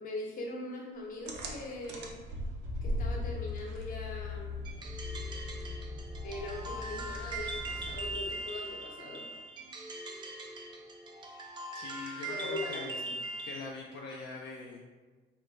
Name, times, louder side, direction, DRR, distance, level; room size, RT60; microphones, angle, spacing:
voice 1, 0.0-2.2 2.8-4.6 6.2-9.2 12.3-13.1, left 2 dB, 50° left, -1 dB, 0.8 m, -41 dB
sound 1, 1.3-8.4, left 2 dB, 75° right, 0.5 m, -39 dB
sound 2, 4.6-13.7, right 2 dB, 25° right, 0.4 m, -41 dB
voice 2, 11.7-13.0 13.4-14.8, left 3 dB, 75° left, -2 dB, 0.4 m, -43 dB
3.1 x 2.1 x 3.9 m, 1.3 s
cardioid pair, 155°, 18 cm